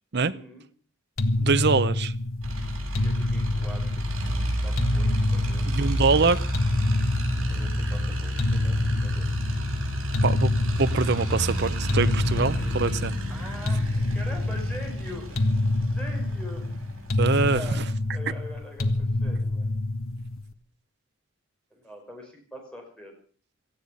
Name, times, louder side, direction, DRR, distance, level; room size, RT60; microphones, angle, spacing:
voice 1, 0.2-0.6 3.0-5.6 7.5-9.3 12.3-13.0 13.3-16.6 17.5-17.8 18.1-19.7 21.7-23.1, equal, 5° left, 5.4 m, -43 dB
sound 1, 1.2-20.5, left 2 dB, 70° left, 1.6 m, -27 dB
voice 2, 1.4-2.1 5.7-6.5 10.2-10.5 10.8-13.1 17.2-17.8, right 4 dB, 50° right, 0.7 m, -24 dB
sound 2, 2.4-18.0, equal, 65° right, 7.1 m, -30 dB
18.0 x 15.0 x 5.4 m
head